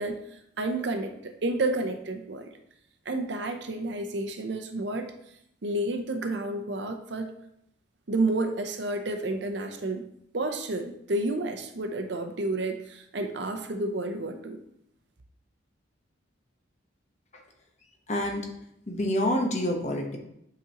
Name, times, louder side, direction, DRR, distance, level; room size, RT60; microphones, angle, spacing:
voice 1, 0.0-2.5 3.1-5.1 5.6-7.3 8.1-10.1 10.3-14.6, right 2 dB, 60° right, 6 dB, 0.7 m, -30 dB
voice 2, 18.1-18.5 18.9-20.2, left 1 dB, 35° left, 2 dB, 1.0 m, -27 dB
8.3 x 5.1 x 2.9 m, 0.76 s
head